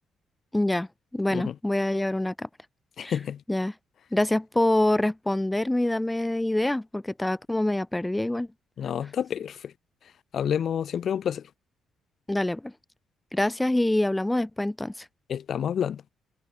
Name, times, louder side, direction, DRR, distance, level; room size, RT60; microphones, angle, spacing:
voice 1, 0.5-0.9 1.1-2.5 3.0-3.2 3.5-3.7 4.1-8.5 12.3-12.7 13.3-15.1, left 1 dB, 10° left, 6.7 m, -25 dB
voice 2, 3.0-3.4 8.8-9.7 10.3-11.4 15.3-16.0, left 8 dB, 60° left, 6.3 m, -29 dB
cardioid pair, 90°, 0 cm